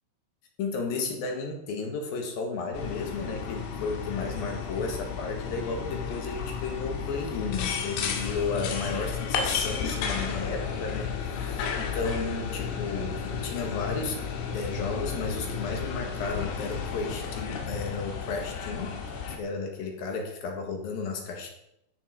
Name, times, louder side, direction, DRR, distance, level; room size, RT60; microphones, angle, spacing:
voice 1, 0.6-14.2 14.5-19.0 19.4-21.5, left 4 dB, 60° left, 4 dB, 2.7 m, -33 dB
sound 1, 2.7-19.4, left 6 dB, 90° left, 4.4 m, -33 dB
14.0 x 10.5 x 4.9 m, 0.79 s
omnidirectional pair, 5.8 m